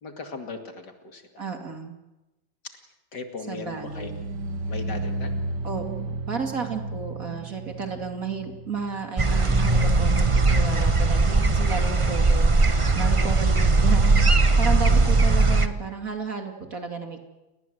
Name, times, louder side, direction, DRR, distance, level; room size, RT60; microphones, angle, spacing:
voice 1, 0.0-1.4 3.1-4.2 4.7-5.3 14.8-15.1, left 4 dB, 55° left, 5 dB, 2.9 m, -38 dB
voice 2, 1.4-1.9 3.5-4.3 5.6-17.4, right 5 dB, 45° right, 4 dB, 2.8 m, -33 dB
sound 1, 3.6-10.7 11.0-11.4 11.8-11.9, right 2 dB, 65° right, 2.6 m, -34 dB
sound 2, 9.2-15.7, right 3 dB, 25° right, 0.6 m, -19 dB
30.0 x 20.0 x 7.9 m, 1.1 s
omnidirectional pair, 2.1 m